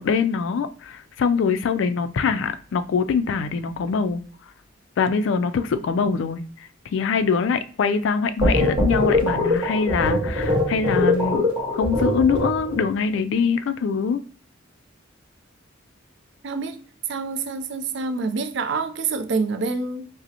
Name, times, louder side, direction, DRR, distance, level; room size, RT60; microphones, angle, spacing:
voice 1, 0.0-4.2 5.0-6.4 6.9-11.4 11.7-14.2, left 5 dB, 65° left, 0.3 m, -23 dB
sound 1, 8.4-12.8, left 2 dB, 25° right, 1.4 m, -22 dB
voice 2, 16.4-16.8 17.1-20.1, right 4 dB, 60° right, 0.4 m, -27 dB
5.1 x 2.0 x 2.8 m
head